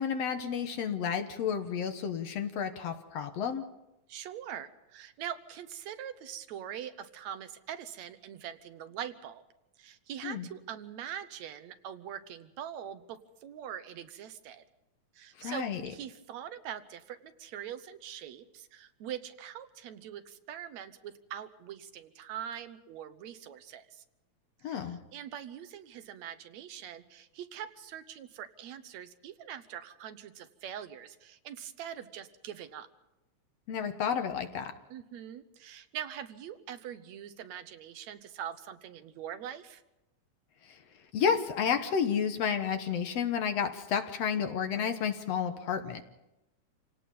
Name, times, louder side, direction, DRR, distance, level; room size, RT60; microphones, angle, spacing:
voice 1, 0.0-3.6 10.2-10.5 15.4-15.8 24.6-25.0 33.7-34.7 41.1-46.0, left 7 dB, 65° left, 7 dB, 2.2 m, -31 dB
voice 2, 4.1-9.4 9.8-14.6 15.2-24.0 24.7-32.9 34.9-39.8, right 9 dB, 75° right, 11 dB, 2.2 m, -43 dB
28.0 x 18.0 x 5.5 m, 0.93 s
omnidirectional pair, 3.3 m